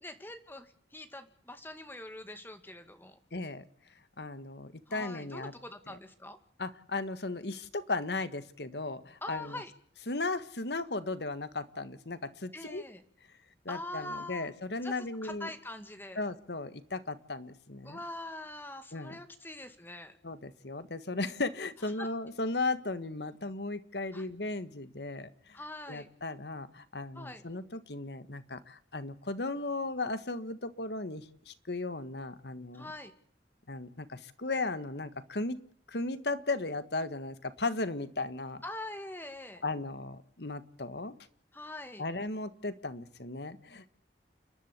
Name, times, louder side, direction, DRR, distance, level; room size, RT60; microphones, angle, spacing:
voice 1, 0.0-3.2 4.9-6.4 9.2-9.7 12.5-13.0 13.7-14.5 14.8-14.9 15.2-16.2 17.8-20.2 22.0-22.1 24.1-24.3 25.5-26.1 27.2-27.4 32.7-33.1 38.6-39.6 41.5-42.0, left 1 dB, 10° left, 8 dB, 2.1 m, -43 dB
voice 2, 3.3-3.6 4.2-5.5 5.9-6.0 6.6-9.6 10.1-12.8 13.6-15.5 16.1-18.0 18.9-19.2 20.2-25.6 25.9-32.9 33.7-35.6 35.9-38.6 39.6-41.2 42.0-43.9, left 3 dB, 70° left, 12 dB, 1.6 m, -36 dB
30.0 x 11.5 x 8.3 m, 0.65 s
head